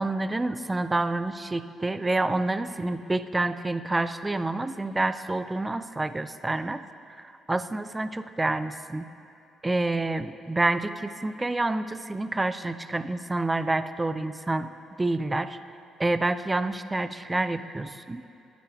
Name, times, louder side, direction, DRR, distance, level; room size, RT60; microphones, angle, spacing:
voice 1, 0.0-9.1 9.6-14.7 15.0-15.6 16.0-18.2, right 2 dB, 15° right, 12 dB, 0.5 m, -28 dB
21.5 x 9.2 x 3.4 m, 2.6 s
cardioid pair, 90°, 0 cm